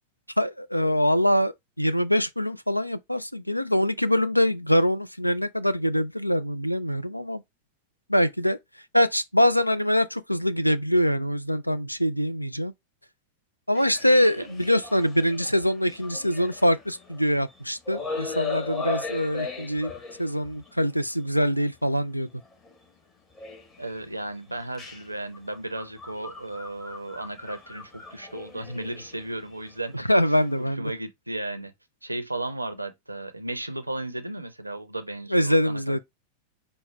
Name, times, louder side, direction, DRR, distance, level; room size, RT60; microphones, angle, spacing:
voice 1, 0.4-7.4 8.1-8.6 8.9-12.7 13.7-19.9 20.2-22.3 29.9-30.9 35.3-36.0, equal, 90° left, 0.3 m, -24 dB
sound 1, 13.8-17.6 17.9-20.7 21.4-21.5 22.4-22.8 23.3-24.0 24.5-30.6, left 4 dB, 25° left, 1.4 m, -38 dB
voice 2, 23.8-31.7 32.0-36.0, right 2 dB, 85° right, 0.5 m, -35 dB
4.6 x 2.1 x 4.5 m
figure-of-eight pair, 90°, 0 cm